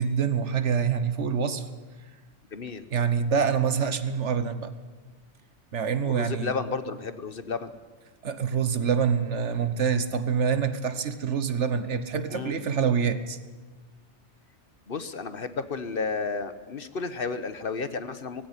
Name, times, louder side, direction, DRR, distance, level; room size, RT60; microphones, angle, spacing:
voice 1, 0.0-1.7 2.9-4.7 5.7-6.5 8.2-13.4, right 6 dB, 75° right, 12 dB, 1.5 m, -26 dB
voice 2, 2.5-2.9 6.0-7.7 12.3-12.5 14.9-18.5, left 4 dB, 50° left, 12 dB, 1.2 m, -32 dB
19.0 x 16.0 x 9.8 m, 1.3 s
omnidirectional pair, 1.2 m